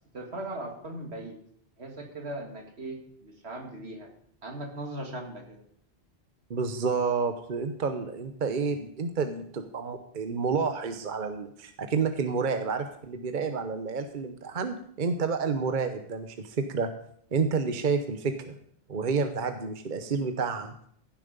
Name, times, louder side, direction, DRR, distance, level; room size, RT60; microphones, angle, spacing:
voice 1, 0.1-1.4 1.8-4.1 4.4-5.6, right 1 dB, 80° right, 3 dB, 2.3 m, -39 dB
voice 2, 6.5-16.9 17.3-18.5 18.9-20.7, right 5 dB, 50° right, 8 dB, 1.0 m, -29 dB
15.5 x 7.5 x 5.2 m, 0.65 s
omnidirectional pair, 1.1 m